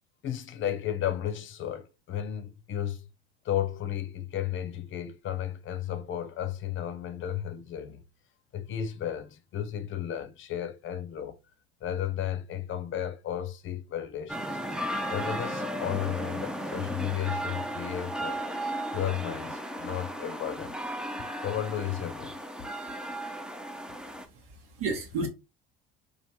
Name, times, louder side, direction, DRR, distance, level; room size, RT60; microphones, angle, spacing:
voice 1, 0.2-3.1 3.4-8.0 8.5-11.4 11.8-18.4 18.9-20.7 21.4-22.5, left 10 dB, 45° left, 0.6 m, -34 dB
sound 1, 14.3-24.3, equal, 5° right, 0.4 m, -35 dB
voice 2, 24.0-25.3, right 3 dB, 70° right, 1.1 m, -34 dB
3.2 x 2.5 x 2.8 m
hypercardioid pair, 70°, 29 cm